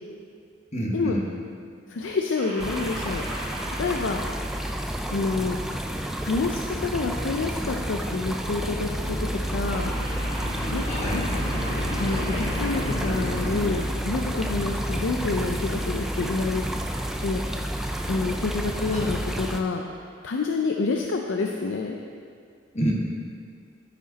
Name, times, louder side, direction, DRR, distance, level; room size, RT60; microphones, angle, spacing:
voice 1, 0.7-1.2 10.9-11.2 18.9-19.2 22.7-22.9, equal, 35° left, -2 dB, 1.3 m, -27 dB
voice 2, 1.9-3.2 3.8-4.2 5.1-5.6 6.2-9.9 10.7-10.9 11.1-11.4 12.0-16.6 17.2-17.7 18.1-19.8 20.2-22.0, left 3 dB, 80° left, 2 dB, 0.5 m, -28 dB
sound 1, 2.3-5.7 9.7-14.5, right 1 dB, 30° right, 2.3 m, -39 dB
sound 2, 2.6-19.6, equal, ahead, 0.4 m, -30 dB
sound 3, 8.6-13.8, equal, 60° left, 1.7 m, -34 dB
13.5 x 5.0 x 4.0 m, 2.3 s
head